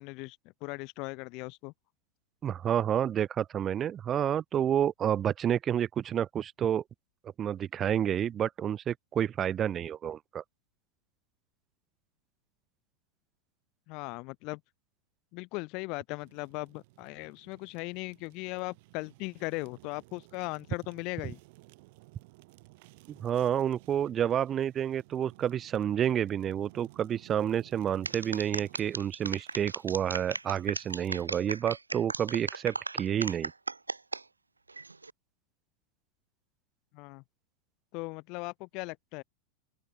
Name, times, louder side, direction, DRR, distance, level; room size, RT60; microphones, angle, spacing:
voice 1, 0.0-1.7 13.9-14.6 15.3-21.4 36.9-37.2 37.9-39.2, left 27 dB, 45° left, 0.5 m, -38 dB
voice 2, 2.4-6.8 7.4-10.4 23.1-33.5, right 9 dB, 25° right, 0.8 m, -29 dB
Fire, 16.2-31.3, right 24 dB, 50° right, 2.6 m, -57 dB
sound 1, 28.0-34.2 34.7-35.1, right 3 dB, 80° right, 0.4 m, -36 dB
open air
figure-of-eight pair, 90°, 0 cm